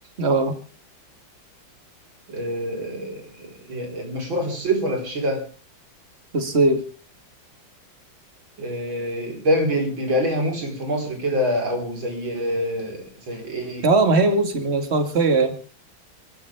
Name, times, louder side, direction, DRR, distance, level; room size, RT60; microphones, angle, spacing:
voice 1, 0.2-0.6 6.3-6.8 13.8-15.6, right 3 dB, 35° right, 8 dB, 2.1 m, -19 dB
voice 2, 2.3-5.4 8.6-13.9, equal, 85° right, 2 dB, 5.2 m, -26 dB
26.5 x 12.5 x 3.5 m, 0.36 s
omnidirectional pair, 2.1 m